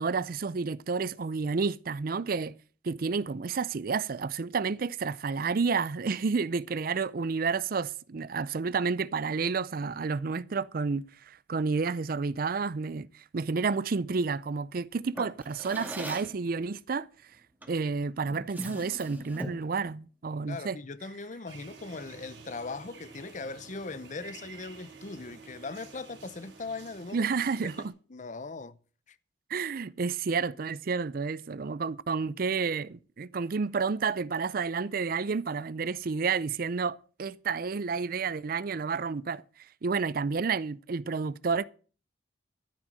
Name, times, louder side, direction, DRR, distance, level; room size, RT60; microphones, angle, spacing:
voice 1, 0.0-2.5 2.8-17.1 17.7-20.8 27.1-27.9 29.5-39.4 39.8-41.6, right 5 dB, 50° right, 0.5 m, -30 dB
Drawer open or close, 15.1-16.4 17.6-17.8 18.2-19.7, right 1 dB, 10° right, 2.0 m, -40 dB
voice 2, 20.5-27.3 28.1-28.8 29.1-29.2, left 3 dB, 40° left, 0.7 m, -39 dB
sound 1, 21.5-27.9, right 5 dB, 70° right, 3.2 m, -50 dB
13.5 x 6.3 x 7.6 m
head